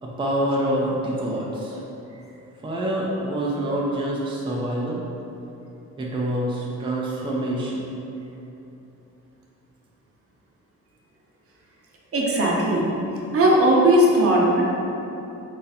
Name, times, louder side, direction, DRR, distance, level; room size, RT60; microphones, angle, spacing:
voice 1, 0.0-1.8 2.6-5.0 6.0-7.8, right 1 dB, 15° right, -4 dB, 0.6 m, -26 dB
voice 2, 12.1-12.9 13.3-14.6, right 1 dB, 50° right, -3 dB, 0.9 m, -18 dB
4.0 x 2.7 x 4.1 m, 2.9 s
cardioid pair, 90°, 30 cm